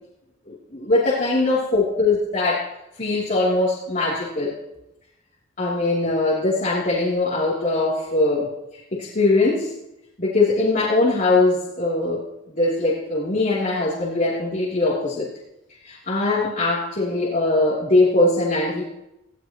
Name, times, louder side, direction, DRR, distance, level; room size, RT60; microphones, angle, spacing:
voice 1, 0.5-2.7 3.0-4.5 5.6-8.5 8.9-9.7 10.2-12.2 12.5-15.3 15.8-18.8, left 2 dB, 45° left, -8 dB, 3.2 m, -21 dB
18.5 x 16.5 x 3.1 m, 0.90 s
head